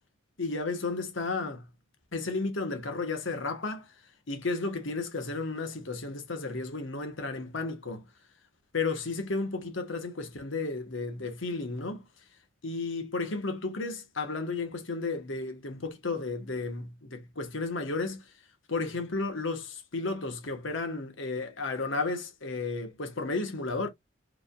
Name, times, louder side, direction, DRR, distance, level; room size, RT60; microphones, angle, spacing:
voice 1, 0.4-1.7 2.1-3.9 4.3-8.1 8.7-12.0 12.6-18.2 18.7-23.9, left 3 dB, 75° left, 1.3 m, -33 dB
4.9 x 3.5 x 2.4 m
head